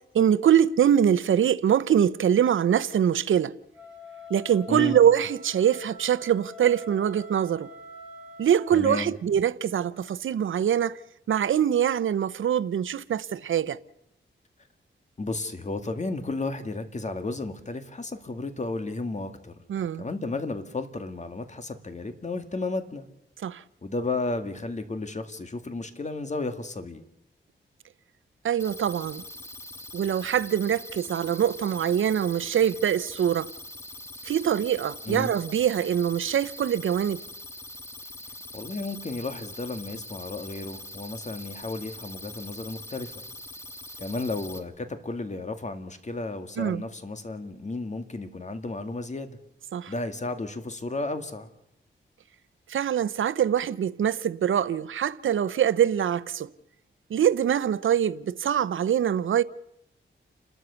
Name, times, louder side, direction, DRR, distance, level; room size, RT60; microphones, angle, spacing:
voice 1, 0.1-3.5 4.3-7.7 8.4-11.0 11.3-13.8 19.7-20.0 23.4-23.6 28.4-29.2 29.9-33.5 34.2-37.2 46.6-46.8 49.7-49.9 52.7-56.5 57.1-59.4, right 9 dB, 80° right, 0.7 m, -23 dB
Wind instrument woodwind instrument, 3.7-8.7, left 3 dB, 5° right, 4.4 m, -45 dB
voice 2, 8.7-9.1 15.2-19.5 20.0-23.1 23.8-27.0 35.1-35.3 38.5-43.1 44.0-49.4 49.9-51.5, left 3 dB, 35° left, 2.0 m, -33 dB
sound 1, 28.6-44.6, left 1 dB, 15° left, 1.9 m, -43 dB
30.0 x 13.0 x 7.0 m
wide cardioid pair, 95°, 20 cm